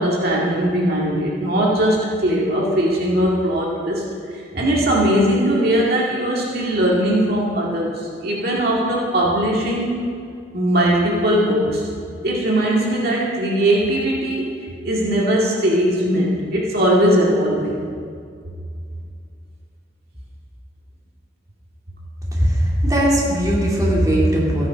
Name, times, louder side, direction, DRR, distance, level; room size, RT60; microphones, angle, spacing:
voice 1, 0.0-4.0 4.5-10.0 10.5-11.8 12.2-14.5 14.8-17.8, right 1 dB, 55° right, -4 dB, 2.1 m, -19 dB
voice 2, 22.3-24.7, equal, 20° right, -5 dB, 2.4 m, -18 dB
14.5 x 10.0 x 5.2 m, 2.2 s
head